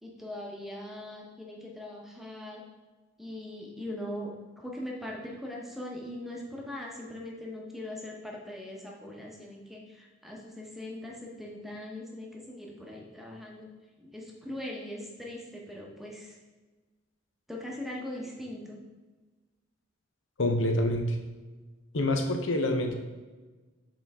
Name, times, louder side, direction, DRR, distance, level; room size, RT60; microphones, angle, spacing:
voice 1, 0.0-2.6 3.2-4.3 4.6-13.7 14.0-16.3 17.5-18.8, left 1 dB, ahead, -1 dB, 1.0 m, -40 dB
voice 2, 20.4-21.2 21.9-23.0, left 1 dB, 75° left, 4 dB, 0.8 m, -26 dB
6.8 x 3.9 x 3.6 m, 1.3 s
head